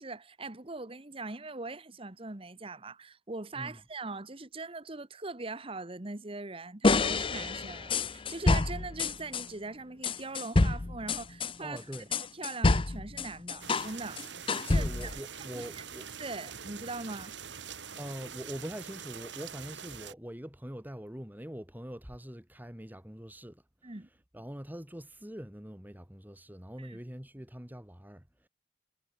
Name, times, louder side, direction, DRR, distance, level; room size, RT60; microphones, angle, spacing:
voice 1, 0.0-11.8 12.3-14.2 14.7-15.2 15.5-15.8 16.2-17.3 23.8-24.1 26.8-27.0, right 3 dB, 30° right, 1.4 m, -41 dB
sound 1, 6.8-9.5 10.0-13.9 14.2-15.2, left 3 dB, 30° left, 0.7 m, -28 dB
voice 2, 11.6-12.1 14.6-16.1 18.0-23.6 24.3-28.5, equal, 10° right, 2.1 m, -43 dB
sound 2, 13.6-20.1, right 7 dB, 90° right, 3.6 m, -44 dB
head